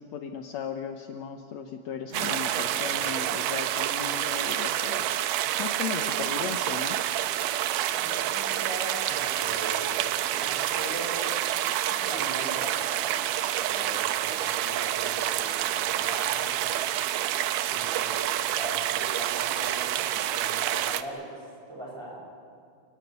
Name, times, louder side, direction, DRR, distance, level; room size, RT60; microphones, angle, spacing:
voice 1, 0.0-5.3 5.6-7.0, left 7 dB, 75° left, 5 dB, 1.6 m, -36 dB
Acoustic guitar, 2.1-6.3, right 1 dB, 20° left, 6.2 m, -50 dB
sound 1, 2.1-21.0, right 12 dB, 75° right, 2.1 m, -28 dB
voice 2, 7.9-11.3 12.0-13.3 13.6-16.8 17.7-22.2, right 1 dB, 5° right, -3 dB, 7.2 m, -40 dB
29.5 x 15.5 x 9.4 m, 2.3 s
omnidirectional pair, 4.4 m